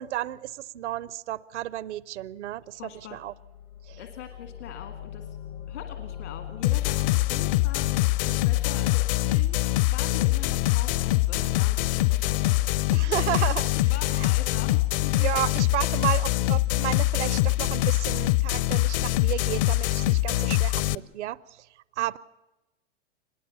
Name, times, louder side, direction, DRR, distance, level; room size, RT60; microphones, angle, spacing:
voice 1, 0.0-2.8 3.1-3.3 3.8-4.0 9.3-9.6 12.9-13.7 14.2-14.3 15.1-21.7 22.0-22.2, right 14 dB, 70° right, 0.7 m, -32 dB
sound 1, 2.6-11.5, left 9 dB, 90° left, 2.6 m, -44 dB
voice 2, 2.7-3.2 4.0-5.4 5.7-15.3, left 9 dB, 75° left, 1.9 m, -43 dB
sound 2, 6.6-20.9, left 18 dB, 50° left, 0.7 m, -24 dB
25.0 x 20.5 x 7.0 m
hypercardioid pair, 115°, 36 cm